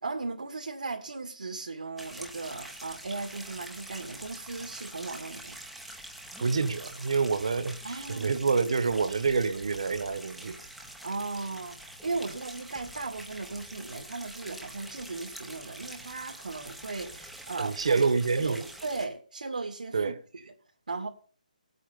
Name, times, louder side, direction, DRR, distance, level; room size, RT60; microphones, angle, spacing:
voice 1, 0.0-5.6 7.8-8.3 11.0-17.9 18.3-20.1 20.5-20.6 20.9-21.1, right 3 dB, 85° right, 2.4 m, -37 dB
sound 1, 2.0-19.1, right 1 dB, ahead, 0.6 m, -45 dB
voice 2, 6.4-10.6 17.6-18.6 19.9-20.2, right 4 dB, 45° right, 1.2 m, -27 dB
18.5 x 8.5 x 5.4 m
hypercardioid pair, 180°, 4 cm